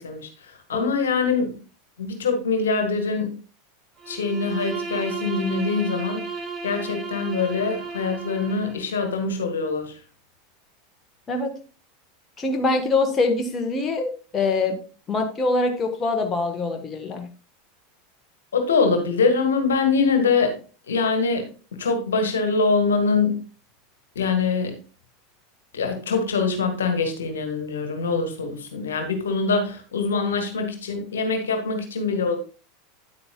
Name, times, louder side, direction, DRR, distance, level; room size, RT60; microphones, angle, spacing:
voice 1, 0.0-1.5 2.0-3.4 4.1-10.0 18.5-20.6 20.9-23.4 24.1-24.8 25.7-32.4, left 4 dB, 70° left, 6 dB, 1.6 m, -24 dB
Bowed string instrument, 4.0-8.9, right 5 dB, 20° right, 2.1 m, -34 dB
voice 2, 12.4-14.8 15.1-17.3, left 3 dB, 25° left, 4 dB, 1.4 m, -24 dB
9.7 x 8.6 x 2.3 m, 0.36 s
figure-of-eight pair, 80°, 0 cm